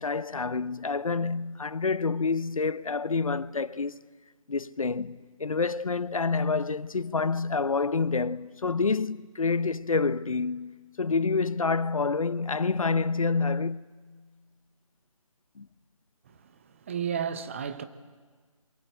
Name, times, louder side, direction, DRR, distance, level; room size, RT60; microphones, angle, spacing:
voice 1, 0.0-4.0 4.5-13.9 15.6-15.7, left 4 dB, 70° left, 0.8 m, -28 dB
voice 2, 16.3-17.9, right 7 dB, 25° right, 0.9 m, -33 dB
28.5 x 23.0 x 8.0 m
figure-of-eight pair, 160°, 18 cm